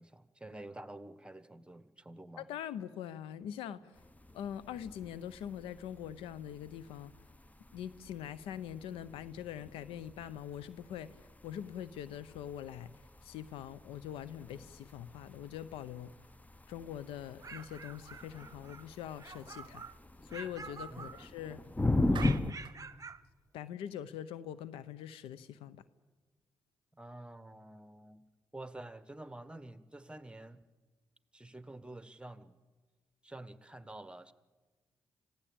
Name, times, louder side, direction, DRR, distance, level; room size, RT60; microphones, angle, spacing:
voice 1, 0.0-2.5 20.9-21.1 26.9-28.2 28.5-30.6 31.3-32.6 33.2-34.3, right 1 dB, 10° right, 13 dB, 1.3 m, -49 dB
voice 2, 2.4-3.9 4.3-7.1 7.7-11.1 11.4-12.9 13.2-16.1 16.7-19.8 20.2-21.6 22.1-22.6 23.5-25.8, left 10 dB, 85° left, 17 dB, 0.7 m, -43 dB
sound 1, 3.9-22.5, left 2 dB, 15° left, 1.0 m, -40 dB
sound 2, 17.2-18.8 19.2-20.0 20.3-21.6 22.1-23.2, right 4 dB, 35° right, 1.0 m, -47 dB
Clapping, 22.2-22.8, right 8 dB, 60° right, 0.7 m, -45 dB
26.0 x 16.0 x 8.7 m, 1.4 s
hypercardioid pair, 45°, 9 cm